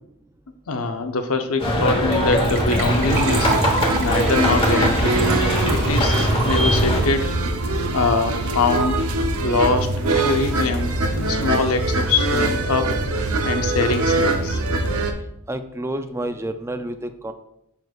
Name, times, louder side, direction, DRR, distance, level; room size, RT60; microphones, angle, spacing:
voice 1, 0.7-3.6 4.0-5.1 5.7-7.3 7.6-9.1 9.4-13.0 13.4-14.6, left 3 dB, 70° left, 7 dB, 0.7 m, -23 dB
sound 1, 1.6-7.0, equal, 25° left, 1.2 m, -21 dB
Gurgling / Trickle dribble / Fill (with liquid), 2.1-8.4 8.6-8.7 8.9-9.1 9.4-9.5, right 4 dB, 35° right, 1.9 m, -31 dB
sound 2, 3.1-15.1, right 2 dB, 75° right, 0.7 m, -23 dB
voice 2, 15.5-17.3, right 1 dB, 10° right, 9 dB, 0.4 m, -29 dB
6.9 x 6.1 x 2.4 m, 0.79 s
head